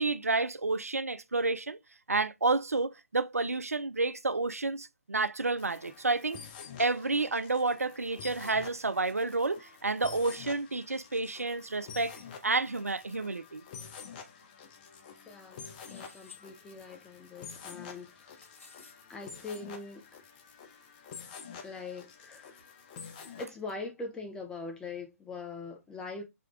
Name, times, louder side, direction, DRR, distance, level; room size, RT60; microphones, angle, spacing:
voice 1, 0.0-1.8 2.1-6.4 6.8-12.1 12.4-13.6, right 3 dB, 90° right, 0.4 m, -30 dB
sound 1, 5.6-23.5, left 6 dB, 35° left, 0.8 m, -48 dB
voice 2, 15.3-18.4 19.1-20.0 21.6-22.6 23.4-26.2, left 3 dB, 10° left, 0.9 m, -42 dB
sound 2, 15.8-16.4 18.0-19.0, left 5 dB, 65° left, 1.5 m, -54 dB
3.8 x 3.2 x 3.5 m
figure-of-eight pair, 130°, 8 cm